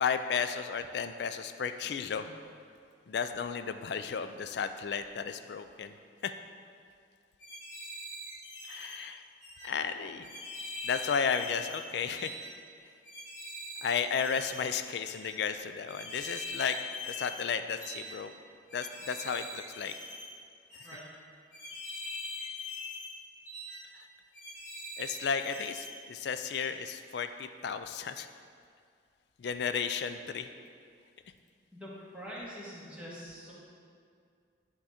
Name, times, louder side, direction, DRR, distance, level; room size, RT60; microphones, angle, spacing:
voice 1, 0.0-2.3 3.1-5.9 6.2-6.3 8.7-9.2 9.6-10.3 10.8-12.4 13.8-16.8 17.1-18.3 18.7-19.9 25.0-28.3 29.4-30.5, left 6 dB, 60° left, 9 dB, 0.3 m, -33 dB
sound 1, 7.4-9.0 9.4-9.7 10.2-11.8 12.2-12.5 13.0-14.6 15.1-15.3 15.9-17.5 17.8-18.2 18.7-20.3 20.7-21.0 21.5-23.1 23.5-23.8 24.3-25.9 26.4-26.6, left 2 dB, 40° left, 1.6 m, -42 dB
voice 2, 31.7-33.5, equal, 5° right, -8 dB, 1.5 m, -45 dB
11.0 x 3.7 x 4.2 m, 2.2 s
head